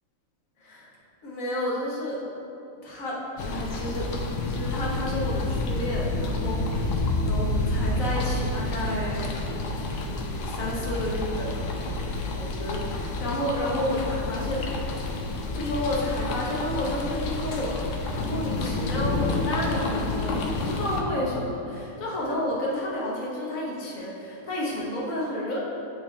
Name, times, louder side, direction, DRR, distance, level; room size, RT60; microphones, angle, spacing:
voice 1, 1.2-2.2 2.8-4.1 4.4-7.0 7.3-9.7 10.1-11.7 12.2-14.6 15.5-18.0 18.2-25.6, left 1 dB, 50° left, -4 dB, 1.0 m, -31 dB
sound 1, 3.4-21.0, left 2 dB, 85° left, 0.9 m, -29 dB
9.3 x 3.3 x 3.3 m, 2.7 s
omnidirectional pair, 2.4 m